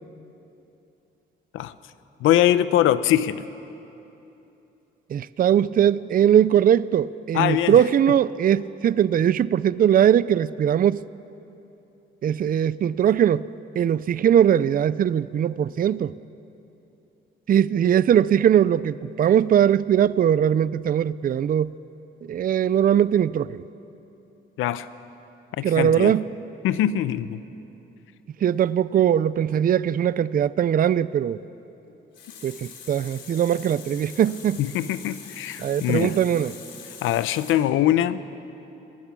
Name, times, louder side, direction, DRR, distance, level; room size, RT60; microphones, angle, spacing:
voice 1, 2.2-3.4 7.3-7.8 24.6-24.9 25.6-26.1 26.6-27.4 34.6-36.2 37.0-38.2, left 12 dB, 90° left, 0.8 m, -22 dB
voice 2, 5.1-11.0 12.2-13.4 13.8-16.1 17.5-21.7 22.3-23.6 25.6-26.3 28.4-31.4 32.4-34.6 35.6-36.5, right 9 dB, 45° right, 0.5 m, -20 dB
Water tap faucet, 31.9-37.5, left 6 dB, 70° left, 3.7 m, -43 dB
29.5 x 20.5 x 6.1 m
cardioid pair, 90°, 20 cm